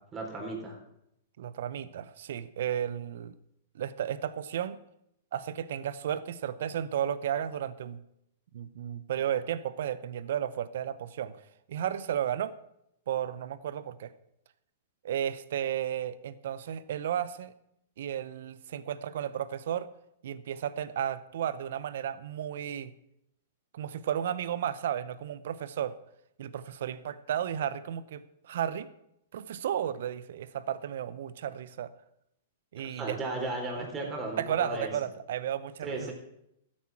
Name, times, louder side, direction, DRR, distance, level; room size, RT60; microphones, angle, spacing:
voice 1, 0.1-0.8 32.8-34.9 35.8-36.1, right 2 dB, 20° right, 0 dB, 3.9 m, -35 dB
voice 2, 1.4-3.3 3.7-4.8 5.3-8.0 8.5-11.3 11.7-12.5 13.1-14.1 15.0-17.5 18.0-19.9 20.2-22.9 23.7-26.0 26.4-28.9 29.3-31.9 32.7-33.2 34.4-36.1, right 10 dB, 65° right, 16 dB, 0.7 m, -33 dB
13.5 x 8.7 x 6.0 m, 0.79 s
hypercardioid pair, 115°, 0 cm